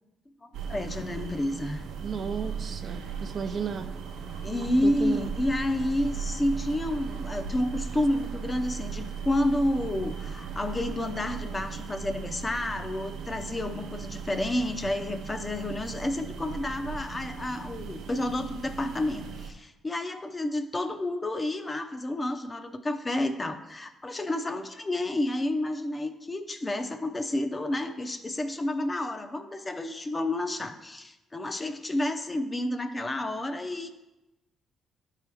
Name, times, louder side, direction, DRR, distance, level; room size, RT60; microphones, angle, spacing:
voice 1, 0.4-1.8 4.4-33.9, left 1 dB, 25° left, 7 dB, 0.7 m, -30 dB
sound 1, 0.5-19.5, right 6 dB, 85° right, 0.7 m, -37 dB
voice 2, 2.0-3.9 4.5-5.3, right 6 dB, 50° right, 7 dB, 0.5 m, -34 dB
11.0 x 4.6 x 3.5 m, 1.0 s
cardioid pair, 90°, 0 cm